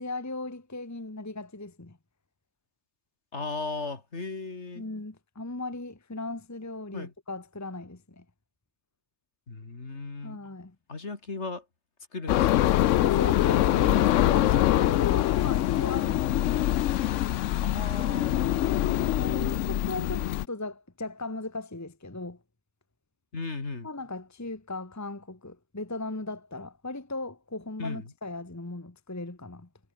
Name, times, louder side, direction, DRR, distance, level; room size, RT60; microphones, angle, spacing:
voice 1, 0.0-2.0 4.7-8.2 10.2-10.7 13.0-16.4 18.6-22.4 23.8-29.7, left 2 dB, 15° left, 1.3 m, -38 dB
voice 2, 3.3-4.8 6.9-7.1 9.5-10.4 10.9-11.6 12.1-12.7 17.6-18.5 23.3-23.9 27.8-28.1, left 3 dB, 55° left, 3.0 m, -36 dB
sound 1, 12.3-20.5, left 13 dB, 70° left, 0.9 m, -24 dB
omnidirectional pair, 1.4 m